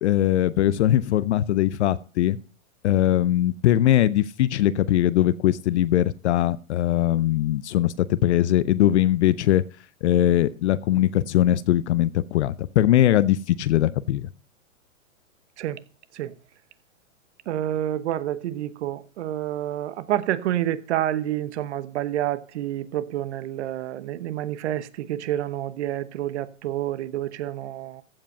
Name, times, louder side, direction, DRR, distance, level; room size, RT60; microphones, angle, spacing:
voice 1, 0.0-2.4 2.8-9.6 10.0-14.3, left 13 dB, 55° left, 0.6 m, -21 dB
voice 2, 17.5-28.0, right 12 dB, 55° right, 1.0 m, -28 dB
15.0 x 5.2 x 5.4 m
hypercardioid pair, 140°, 40 cm